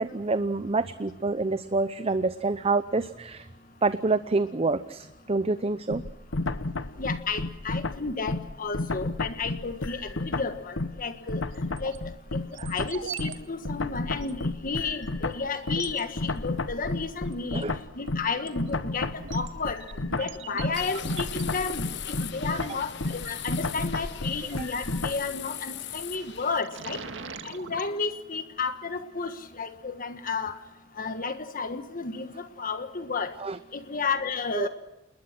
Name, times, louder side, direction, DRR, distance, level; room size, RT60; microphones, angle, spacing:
voice 1, 0.0-3.5 3.8-6.0 12.6-12.7 17.5-17.8 24.6-24.7 33.4-33.6 34.5-34.7, right 3 dB, 30° right, 12 dB, 0.7 m, -27 dB
sound 1, 5.9-11.0 11.3-25.3, left 2 dB, 90° left, 1.2 m, -32 dB
voice 2, 7.0-11.4 11.8-12.0 12.3-12.4 12.7-17.6 18.0-19.8 20.2-21.9 22.3-27.0 27.4-30.6 31.0-33.3 33.7-34.7, left 4 dB, 45° left, 9 dB, 1.5 m, -32 dB
sound 2, 11.5-12.0 12.5-13.4 13.6-13.7 14.2-14.3 15.0-15.1 15.6-16.0 17.3-17.6 18.1-24.0 25.6-25.9 26.3-27.9, right 6 dB, 75° right, 1.9 m, -42 dB
sound 3, 20.7-26.6, left 10 dB, 65° left, 1.2 m, -39 dB
28.0 x 21.0 x 6.1 m, 0.95 s
head